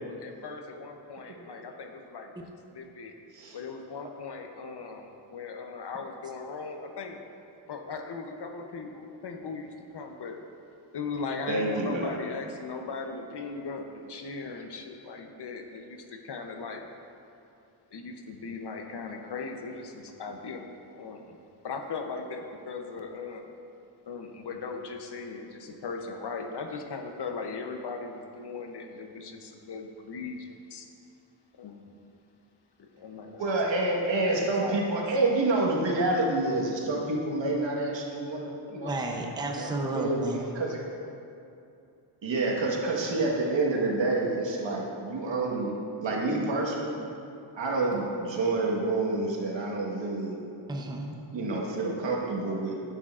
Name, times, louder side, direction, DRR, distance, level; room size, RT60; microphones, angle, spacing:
voice 1, 0.0-2.3 2.7-3.1 3.5-7.2 7.7-10.4 10.9-16.9 17.9-20.7 20.9-21.4 21.6-23.5 24.1-30.9 31.6-32.0 32.8-33.4 34.0-34.9, left 4 dB, 55° left, 4 dB, 0.7 m, -38 dB
voice 2, 11.5-12.1 33.4-38.9 39.5-40.2 40.5-40.8 42.2-45.7 46.0-47.0 47.6-50.4 51.3-52.8, right 2 dB, 65° right, -2 dB, 1.4 m, -28 dB
voice 3, 38.8-40.5 50.7-51.2, right 2 dB, 10° right, 1 dB, 0.6 m, -32 dB
9.7 x 8.7 x 2.4 m, 2.6 s
wide cardioid pair, 115°, 48 cm